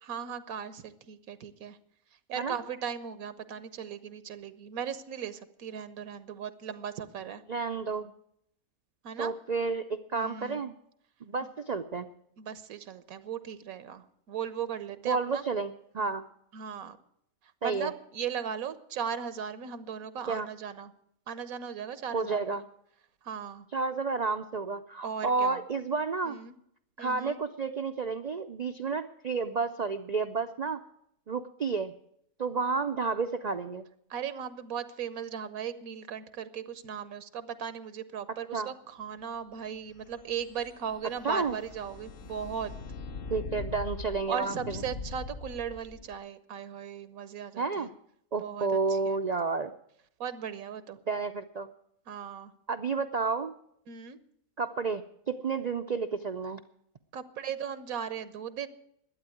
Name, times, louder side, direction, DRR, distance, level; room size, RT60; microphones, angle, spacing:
voice 1, 0.0-1.8 2.3-7.4 9.0-9.3 10.1-10.6 12.4-15.4 16.5-17.0 17.6-20.9 21.3-22.6 23.2-23.7 25.0-25.6 26.2-26.5 27.0-27.4 34.1-42.7 44.3-47.9 48.4-49.2 50.2-51.0 52.1-52.5 53.9-54.2 57.1-58.7, right 7 dB, 85° right, 13 dB, 1.3 m, -37 dB
voice 2, 7.5-8.1 9.2-10.7 11.2-12.1 15.0-16.2 17.6-17.9 20.3-20.5 22.1-22.6 23.7-26.4 27.0-30.8 31.3-31.9 32.4-33.8 38.5-38.7 41.2-41.5 43.3-44.8 47.6-47.9 48.3-49.7 51.1-51.7 52.7-53.5 54.6-56.6, right 4 dB, 60° right, 8 dB, 0.4 m, -31 dB
sound 1, 39.8-46.1, left 4 dB, 50° left, 0.8 m, -42 dB
12.0 x 8.9 x 9.1 m, 0.72 s
omnidirectional pair, 1.4 m